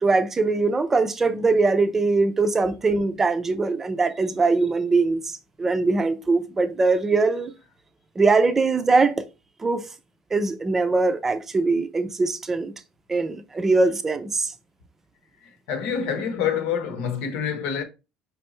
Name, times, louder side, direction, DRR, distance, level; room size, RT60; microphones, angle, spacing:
voice 1, 0.0-7.5 8.2-9.2 9.6-9.9 10.3-12.7 13.1-14.5, right 3 dB, 15° right, 0.5 m, -22 dB
voice 2, 15.4-17.8, left 7 dB, 75° left, 1.0 m, -27 dB
5.2 x 3.3 x 3.0 m
cardioid pair, 165°, 2 cm